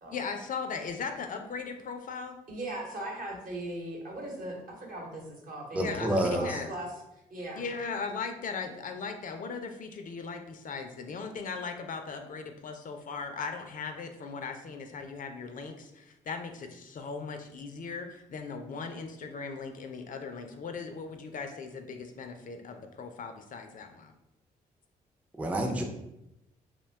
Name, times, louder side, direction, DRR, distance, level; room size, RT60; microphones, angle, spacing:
voice 1, 0.1-2.4 5.7-6.7 7.6-24.1 25.6-25.7, left 5 dB, 50° left, 5 dB, 0.4 m, -38 dB
voice 2, 2.5-6.9 7.3-7.6, right 1 dB, 55° right, -1 dB, 1.0 m, -39 dB
voice 3, 5.7-6.6 25.4-25.8, right 1 dB, 10° right, 2 dB, 0.4 m, -28 dB
2.5 x 2.2 x 3.4 m, 0.88 s
supercardioid pair, 55°, 17 cm